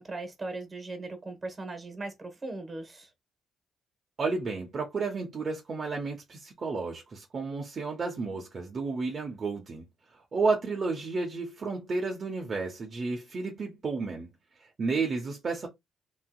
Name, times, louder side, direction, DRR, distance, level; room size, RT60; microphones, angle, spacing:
voice 1, 0.0-3.1, right 2 dB, 25° right, 1.2 m, -38 dB
voice 2, 4.2-9.9 10.1-14.3 14.8-15.7, right 4 dB, 45° right, 0.8 m, -32 dB
3.1 x 2.9 x 2.3 m
cardioid pair, 90°, 0 cm